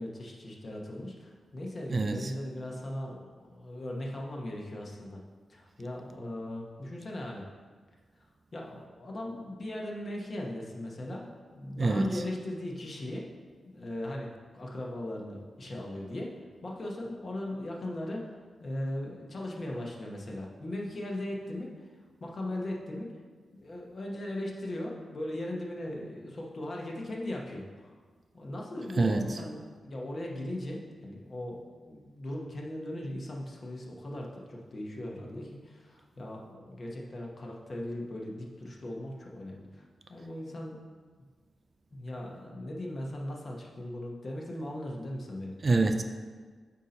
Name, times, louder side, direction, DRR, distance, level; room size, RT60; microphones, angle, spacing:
voice 1, 0.0-5.2 5.5-7.4 8.5-13.3 13.6-16.3 16.6-21.9 22.2-23.1 23.5-27.9 28.3-40.8 41.9-45.6, left 1 dB, 40° left, -1 dB, 1.0 m, -38 dB
voice 2, 1.9-2.3 11.8-12.2 29.0-29.2 45.6-46.0, right 3 dB, 35° right, 7 dB, 0.3 m, -25 dB
8.2 x 2.8 x 5.2 m, 1.5 s
wide cardioid pair, 130°, 0 cm